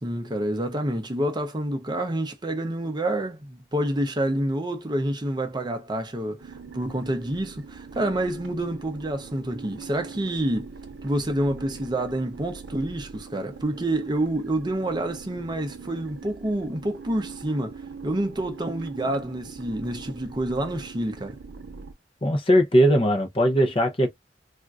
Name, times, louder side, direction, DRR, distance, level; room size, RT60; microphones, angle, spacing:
voice 1, 0.0-10.7 11.0-21.4, right 1 dB, 25° right, 0.7 m, -28 dB
sound 1, 6.4-21.9, right 5 dB, 85° right, 0.6 m, -42 dB
voice 2, 22.2-24.1, equal, 30° left, 0.7 m, -19 dB
3.6 x 2.5 x 2.4 m
head